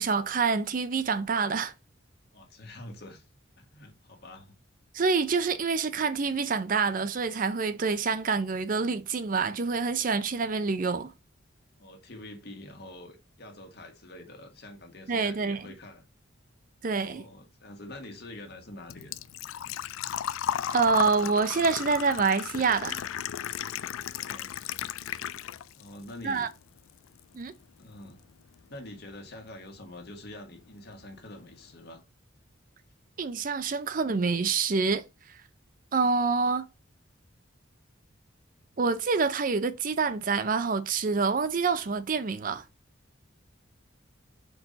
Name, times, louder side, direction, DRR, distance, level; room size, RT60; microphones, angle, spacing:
voice 1, 0.0-1.7 4.9-11.1 15.1-15.7 16.8-17.2 20.7-23.0 26.2-26.5 27.3-27.5 33.2-35.0 35.9-36.7 38.8-42.6, right 4 dB, 40° right, 0.5 m, -26 dB
voice 2, 2.3-3.2 3.6-4.5 11.8-16.1 17.0-19.2 24.0-24.5 25.7-26.5 27.8-28.2 28.7-32.0, left 1 dB, 55° left, 1.5 m, -46 dB
Engine / Trickle dribble / Fill (with liquid), 17.9-25.9 26.2-27.2 27.5-27.6 29.5-29.6 29.8-30.1 30.5-30.6 30.8-30.9, left 10 dB, 90° left, 0.4 m, -35 dB
4.6 x 4.1 x 5.1 m
head